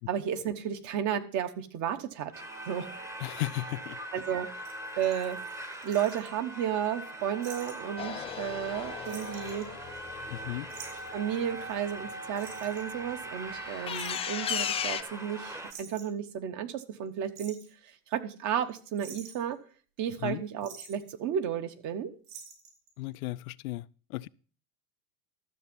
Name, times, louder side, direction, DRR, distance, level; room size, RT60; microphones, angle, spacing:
voice 1, 0.1-2.3 2.7-2.9 4.1-4.6 5.0-5.4 5.8-9.7 11.1-17.6 17.8-19.6 20.0-22.1, right 9 dB, 40° right, 1.2 m, -33 dB
sound 1, 2.3-15.7, right 1 dB, 5° right, 1.0 m, -41 dB
voice 2, 3.2-4.0 10.3-10.7 20.2-20.4 23.0-24.3, left 18 dB, 70° left, 0.6 m, -35 dB
sound 2, 4.6-6.3 7.4-7.7 8.0-8.1 8.4-8.7 9.0-10.2 10.7-11.1 12.4-12.9 13.9-14.4 15.3-15.4 15.7-16.2 17.1-17.7 18.4-18.7 19.0-19.5 20.6-21.0 22.2-22.9 23.1-23.2, right 6 dB, 55° right, 4.3 m, -48 dB
sound 3, 8.0-11.7 13.5-15.0, left 8 dB, 15° left, 0.4 m, -36 dB
13.0 x 7.0 x 5.3 m
supercardioid pair, 120°, 45 cm